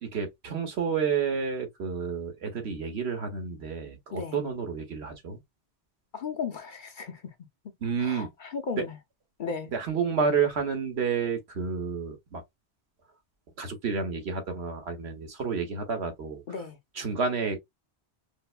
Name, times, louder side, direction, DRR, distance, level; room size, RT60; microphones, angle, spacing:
voice 1, 0.0-5.4 7.8-8.3 9.7-12.4 13.6-16.4 16.9-17.6, right 6 dB, 70° right, 1.3 m, -30 dB
voice 2, 4.1-4.4 6.1-7.2 8.0-9.0 9.4-9.7 16.5-16.8, left 5 dB, 55° left, 0.8 m, -35 dB
5.2 x 2.1 x 2.3 m
omnidirectional pair, 1.1 m